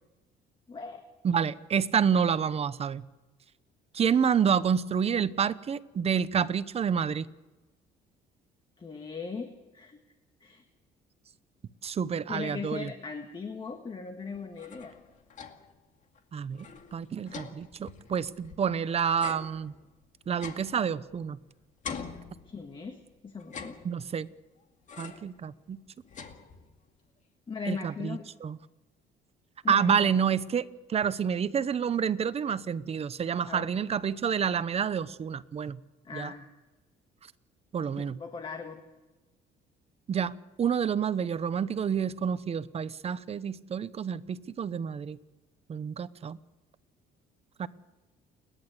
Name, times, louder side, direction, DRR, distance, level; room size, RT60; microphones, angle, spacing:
voice 1, 0.7-1.0 8.8-10.0 10.4-10.6 12.3-14.9 22.5-23.8 27.5-28.2 29.6-30.1 33.5-33.7 36.0-36.5 38.2-38.8, left 5 dB, 30° left, 6 dB, 1.8 m, -39 dB
voice 2, 1.2-3.1 3.9-7.3 11.8-12.9 16.3-16.6 16.9-19.7 20.3-21.4 23.8-24.3 25.0-25.8 27.7-28.6 29.7-35.8 36.1-36.3 37.7-38.2 40.1-45.2 45.7-46.4 47.6-47.7, right 7 dB, 35° right, 15 dB, 0.9 m, -28 dB
sound 1, 14.3-15.8 16.1-16.2 16.5-18.7 19.2-21.4 21.8-22.9 23.4-24.3 24.9-25.4 25.7-26.9, left 6 dB, 45° left, 2.2 m, -44 dB
29.5 x 11.0 x 8.2 m, 1.1 s
cardioid pair, 110°, 17 cm